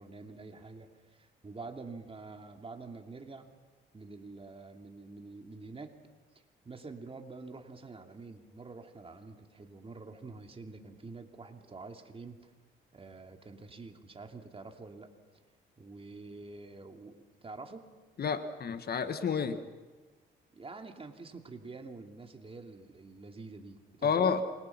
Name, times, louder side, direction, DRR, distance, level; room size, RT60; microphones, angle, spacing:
voice 1, 0.0-3.5 3.9-5.9 6.3-12.5 12.9-15.1 15.8-17.9 20.6-24.4, right 3 dB, 30° right, 4 dB, 2.7 m, -47 dB
voice 2, 18.2-19.6 24.0-24.4, left 6 dB, 50° left, 10 dB, 1.6 m, -29 dB
27.5 x 23.0 x 6.0 m, 1.3 s
cardioid pair, 90°, 20 cm